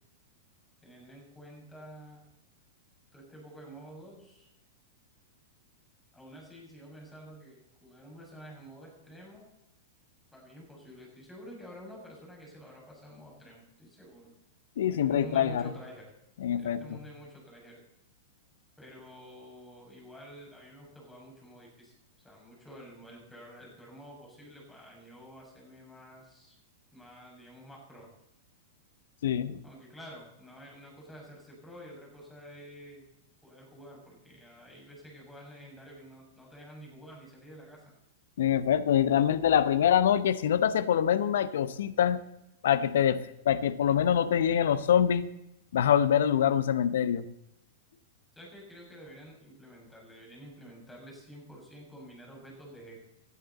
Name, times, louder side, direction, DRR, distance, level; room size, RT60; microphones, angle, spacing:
voice 1, 0.8-2.2 3.1-4.5 6.1-9.5 10.3-14.3 14.8-16.1 16.6-17.8 18.8-21.9 22.2-26.6 26.9-28.1 29.6-33.1 33.4-37.8 48.3-53.0, equal, 10° left, -1 dB, 6.4 m, -49 dB
voice 2, 14.8-15.6 16.4-17.0 29.2-29.6 38.4-42.2 42.6-45.3 45.7-47.3, left 9 dB, 65° left, 15 dB, 0.9 m, -25 dB
18.0 x 11.5 x 4.1 m, 0.85 s
figure-of-eight pair, 100°, 0 cm